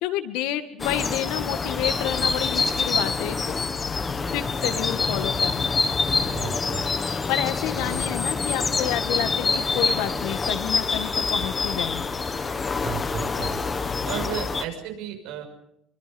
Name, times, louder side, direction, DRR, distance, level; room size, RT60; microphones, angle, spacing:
voice 1, 0.0-3.6 4.3-5.7 7.3-12.1, left 12 dB, 70° left, 9 dB, 2.0 m, -29 dB
sound 1, 0.8-14.6, left 4 dB, 15° left, 1.1 m, -26 dB
voice 2, 6.3-6.9 7.7-8.0 12.8-13.6 14.0-15.4, right 10 dB, 65° right, 4 dB, 6.2 m, -34 dB
26.5 x 24.0 x 5.5 m, 0.75 s
cardioid pair, 175°, 0 cm